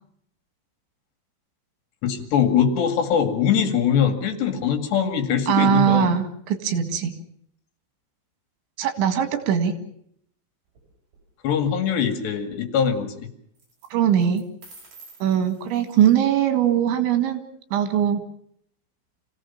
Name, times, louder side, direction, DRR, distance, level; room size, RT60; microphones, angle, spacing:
voice 1, 2.0-6.1 11.4-13.3, left 8 dB, 70° left, 6 dB, 4.3 m, -22 dB
voice 2, 5.5-7.1 8.8-9.7 13.9-14.4 15.2-17.4 17.7-18.2, right 9 dB, 85° right, 8 dB, 4.3 m, -21 dB
sound 1, 10.7-11.2 13.5-13.9 14.2-16.3, right 3 dB, 45° right, 8.5 m, -50 dB
27.0 x 16.5 x 7.3 m, 0.70 s
omnidirectional pair, 5.2 m